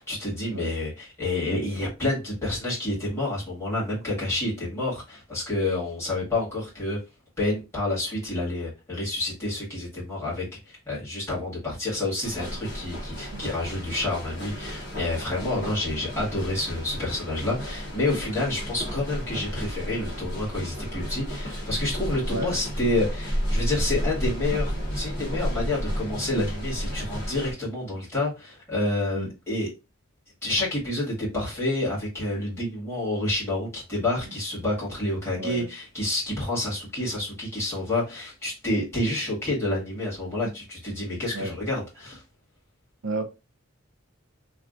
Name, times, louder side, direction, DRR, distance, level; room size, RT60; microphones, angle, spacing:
voice 1, 0.0-7.0 7.4-29.7 30.4-42.2, left 2 dB, 10° left, 1.8 m, -29 dB
voice 2, 0.5-0.7 13.3-13.5 22.3-22.5 29.1-29.3 35.4-35.7 41.3-41.5 43.0-43.2, right 2 dB, 60° right, 0.6 m, -31 dB
sound 1, 12.2-27.5, equal, 55° left, 1.2 m, -32 dB
3.2 x 2.5 x 2.5 m
head